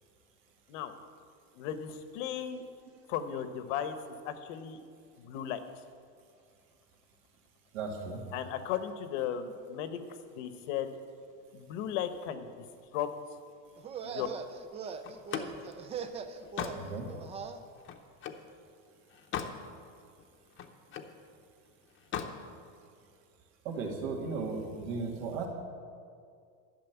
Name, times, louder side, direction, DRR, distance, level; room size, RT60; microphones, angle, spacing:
voice 1, 1.6-2.6 3.1-4.0 4.2-4.8 5.2-5.6 8.3-10.0 10.3-10.9 11.5-12.7 12.9-13.1 14.0-14.3, left 9 dB, 70° left, 9 dB, 1.2 m, -35 dB
voice 2, 7.7-8.2 16.7-17.1 23.6-25.5, right 4 dB, 80° right, -1 dB, 2.7 m, -36 dB
sound 1, 13.8-17.6, right 6 dB, 15° right, 0.3 m, -41 dB
Slam, 15.0-18.5 18.9-19.6 20.0-21.2 21.9-22.4, left 8 dB, 30° left, 0.8 m, -39 dB
12.0 x 6.5 x 9.1 m, 2.3 s
cardioid pair, 155°, 38 cm